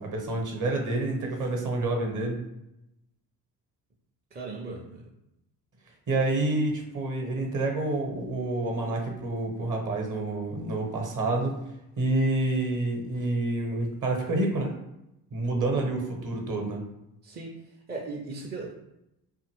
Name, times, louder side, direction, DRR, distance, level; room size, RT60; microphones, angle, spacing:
voice 1, 0.0-2.4 6.1-11.6 12.0-14.7 15.3-16.8, right 2 dB, 40° right, 2 dB, 0.9 m, -28 dB
voice 2, 4.3-5.0 17.2-17.5 17.9-18.7, right 3 dB, 20° right, -2 dB, 0.5 m, -37 dB
2.7 x 2.5 x 2.9 m, 0.87 s
hypercardioid pair, 50°, 49 cm